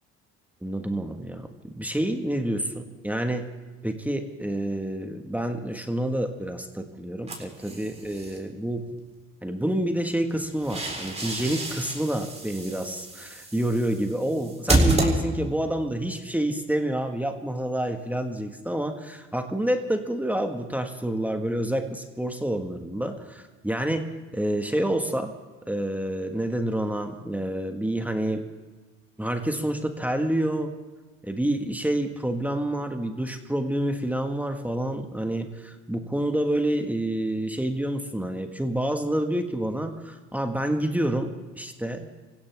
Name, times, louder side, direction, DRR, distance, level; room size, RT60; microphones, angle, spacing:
voice 1, 0.6-3.5 3.8-8.9 9.4-25.3 25.7-28.4 29.2-30.7 31.2-42.1, right 1 dB, 5° right, 5 dB, 1.6 m, -28 dB
sound 1, 7.3-8.4 10.3-15.7, right 2 dB, 20° right, 4.1 m, -29 dB
25.0 x 16.0 x 3.5 m, 1.3 s
supercardioid pair, 75°, 30 cm